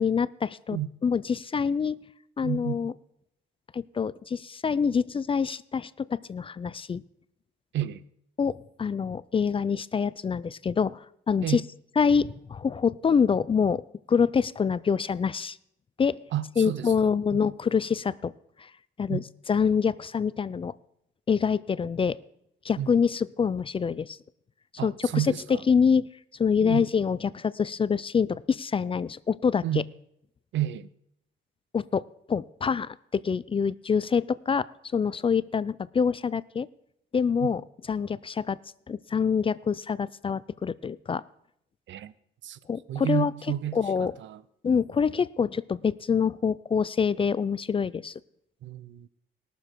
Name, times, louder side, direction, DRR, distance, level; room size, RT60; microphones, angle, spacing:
voice 1, 0.0-2.0 2.4-2.9 3.7-7.0 8.4-11.6 12.0-13.8 14.1-15.6 16.0-16.2 16.6-18.3 18.6-18.7 19.0-20.7 21.3-22.2 22.6-24.2 24.8-25.3 25.7-26.1 26.4-29.8 31.7-32.0 32.3-34.7 34.9-36.7 37.1-37.6 37.9-38.6 38.9-41.2 42.7-43.3 43.7-44.1 44.6-48.2, left 6 dB, 25° left, 0.3 m, -26 dB
voice 2, 2.4-2.7 7.7-8.0 11.4-11.6 16.3-16.9 19.1-19.2 22.8-22.9 24.8-25.6 26.6-26.8 29.6-29.8 30.5-30.9 37.4-37.5 41.9-42.1 42.4-42.6 42.9-43.8 44.2-44.4 48.6-49.1, right 12 dB, 70° right, 0.6 m, -30 dB
20.0 x 6.8 x 4.5 m
cardioid pair, 90°, 20 cm